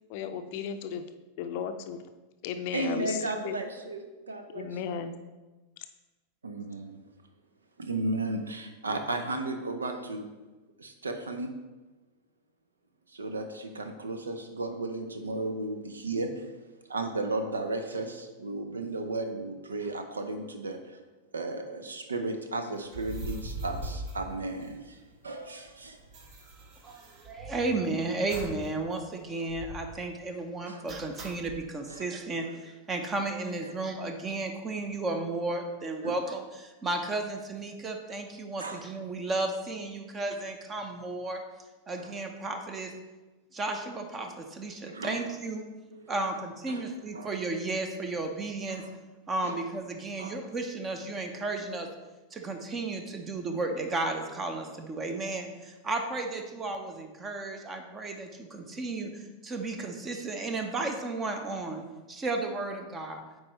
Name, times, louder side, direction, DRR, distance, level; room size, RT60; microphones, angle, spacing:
voice 1, 0.1-1.0 1.4-2.0 2.4-3.6 4.5-5.1, left 7 dB, 50° left, 8 dB, 0.5 m, -35 dB
voice 2, 2.7-5.0 6.4-7.0 7.8-10.3 10.8-11.5 13.1-16.5 16.9-21.0 21.3-26.0 30.7-30.8 31.9-32.1 32.4-32.5 33.6-33.7 36.0-36.1 38.6-38.8 42.0-42.1 44.9-45.2 45.9-46.1 46.7-46.8 47.1-47.3 48.7-48.9 49.4-49.6 50.2-50.4, right 2 dB, 75° right, 7 dB, 0.6 m, -34 dB
sound 1, 22.8-25.1 25.4-25.5 25.7-27.8 28.3-28.7 29.0-29.1 29.5-30.0 30.9-31.6, right 1 dB, 45° right, 1.1 m, -41 dB
voice 3, 26.8-41.4 41.9-42.9 43.5-45.6 46.1-48.8 49.3-51.9 52.3-63.2, right 2 dB, 20° right, 5 dB, 0.8 m, -33 dB
8.5 x 4.7 x 3.1 m, 1.2 s
figure-of-eight pair, 90°, 0 cm